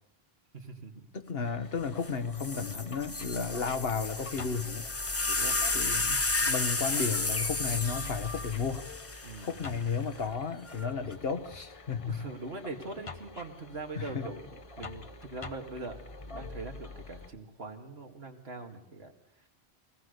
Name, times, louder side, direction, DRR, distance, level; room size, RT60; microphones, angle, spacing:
voice 1, 0.5-1.1 5.1-5.6 6.1-6.3 9.2-9.5 12.0-14.5 14.8-19.1, right 3 dB, 75° right, 4 dB, 2.4 m, -42 dB
voice 2, 1.1-4.8 5.7-6.1 6.5-8.9 9.4-12.3 13.9-14.3, left 5 dB, 70° left, 10 dB, 1.4 m, -33 dB
sound 1, 1.4-17.3, left 3 dB, 35° left, 0.9 m, -46 dB
sound 2, 2.0-2.1 2.4-9.8 10.7-11.1, left 2 dB, 15° left, 0.6 m, -32 dB
23.0 x 18.5 x 6.7 m, 0.89 s
omnidirectional pair, 1.1 m